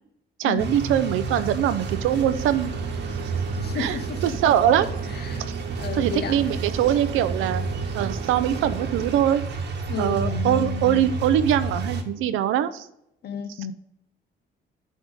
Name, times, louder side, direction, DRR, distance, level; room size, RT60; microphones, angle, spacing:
voice 1, 0.4-2.7 3.7-4.9 5.9-7.6 7.9-9.4 10.0-12.9, right 10 dB, 90° right, 0.6 m, -22 dB
sound 1, 0.6-12.0, right 3 dB, 60° right, 1.2 m, -31 dB
sound 2, 1.8-9.2, right 6 dB, 35° right, 0.9 m, -37 dB
voice 2, 3.6-4.3 5.2-5.4 5.8-6.4 9.9-11.1 13.2-13.7, left 6 dB, 55° left, 0.7 m, -32 dB
8.4 x 3.6 x 5.1 m
cardioid pair, 90°, 20 cm